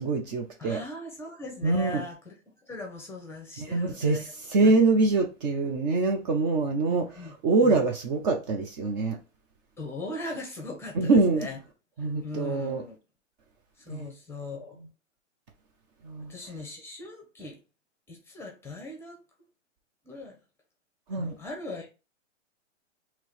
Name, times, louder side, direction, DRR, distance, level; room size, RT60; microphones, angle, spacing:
voice 1, 0.0-0.8 1.6-2.0 3.6-7.1 7.4-9.2 11.0-11.5 12.0-12.8 13.9-14.1 16.0-16.3 21.1-21.4, right 3 dB, 35° right, 0.7 m, -24 dB
voice 2, 0.6-2.3 2.6-4.3 4.6-4.7 6.9-7.3 7.6-7.8 9.8-11.6 12.2-13.0 13.8-14.8 16.3-17.6 18.1-19.2 20.0-20.3 21.1-21.9, left 2 dB, 5° left, 0.9 m, -39 dB
3.0 x 2.9 x 4.2 m
hypercardioid pair, 130°, 38 cm